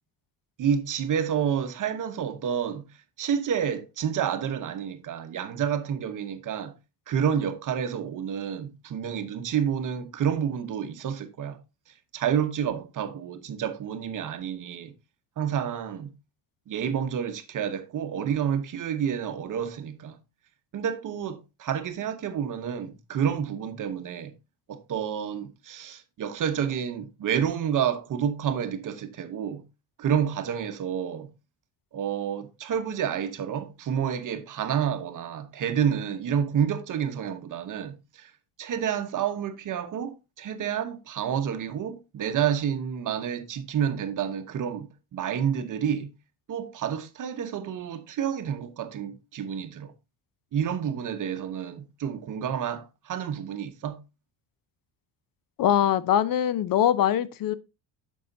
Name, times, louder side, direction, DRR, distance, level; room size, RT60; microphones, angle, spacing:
voice 1, 0.6-6.7 7.1-14.9 15.4-16.1 16.7-20.2 20.7-24.3 24.7-29.6 30.0-31.3 31.9-38.3 38.6-46.1 46.5-49.9 50.5-54.0, right 8 dB, 45° right, 1.0 m, -29 dB
voice 2, 55.6-57.5, left 10 dB, 50° left, 0.6 m, -22 dB
8.5 x 6.3 x 2.7 m
cardioid pair, 125°, 43 cm